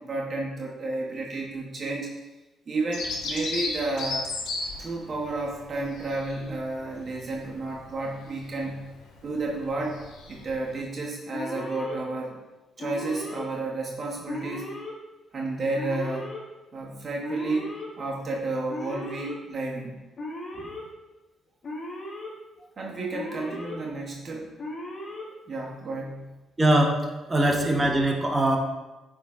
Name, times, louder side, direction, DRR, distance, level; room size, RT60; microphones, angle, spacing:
voice 1, 0.0-2.1 2.7-4.2 4.8-8.9 9.2-10.0 10.3-12.4 12.8-14.8 15.3-16.3 16.7-20.0 20.5-20.7 22.8-24.5 25.5-26.3, right 2 dB, 45° right, -2 dB, 1.2 m, -31 dB
Bird vocalization bird call bird song, 2.9-10.8, left 3 dB, 85° left, 1.1 m, -36 dB
Alarm, 11.3-12.0 12.8-13.4 14.3-14.9 15.7-16.4 17.2-17.9 18.7-19.3 20.2-20.8 21.6-22.3 23.1-23.8 24.6-25.2, left 1 dB, 45° left, 1.5 m, -37 dB
voice 2, 26.6-27.0 27.3-28.6, right 1 dB, 20° right, 1 dB, 1.2 m, -21 dB
8.2 x 3.9 x 3.6 m, 1.1 s
cardioid pair, 90°, 0 cm